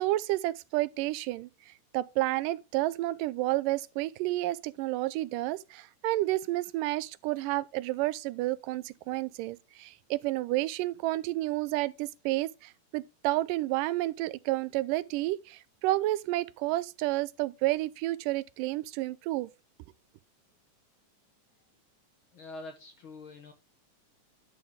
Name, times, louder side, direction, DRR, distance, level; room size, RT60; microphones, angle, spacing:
voice 1, 0.0-19.5, right 17 dB, 90° right, 2.2 m, -30 dB
voice 2, 22.3-23.5, left 2 dB, 55° left, 1.6 m, -45 dB
10.5 x 6.0 x 3.6 m
omnidirectional pair, 3.7 m